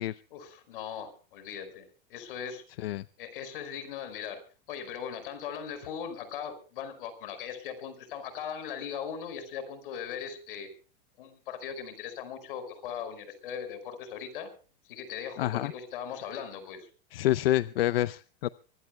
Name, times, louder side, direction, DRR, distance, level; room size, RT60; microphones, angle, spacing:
voice 1, 0.3-2.6 3.2-4.4 4.7-10.7 11.2-14.5 14.8-16.9, left 8 dB, 65° left, 11 dB, 5.1 m, -39 dB
voice 2, 15.4-15.7 17.1-18.5, left 14 dB, 90° left, 14 dB, 0.7 m, -27 dB
24.5 x 20.0 x 2.2 m, 0.37 s
supercardioid pair, 170°, 29 cm